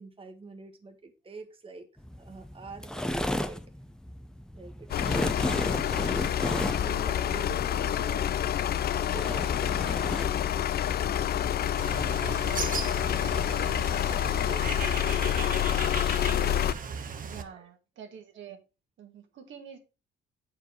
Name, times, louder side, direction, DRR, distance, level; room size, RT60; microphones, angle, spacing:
voice 1, 0.0-1.9 2.1-3.6 4.5-8.3 8.8-15.4 17.3-17.7, right 3 dB, 25° right, 6 dB, 1.4 m, -47 dB
sound 1, 2.0-11.5, equal, 5° left, 0.8 m, -35 dB
sound 2, 4.9-16.7, left 10 dB, 50° left, 0.5 m, -28 dB
Bird, 11.8-17.4, right 6 dB, 45° right, 1.0 m, -37 dB
voice 2, 17.2-18.6 19.0-19.8, right 8 dB, 70° right, 5 dB, 1.6 m, -46 dB
7.8 x 4.8 x 4.5 m, 0.29 s
cardioid pair, 90°, 20 cm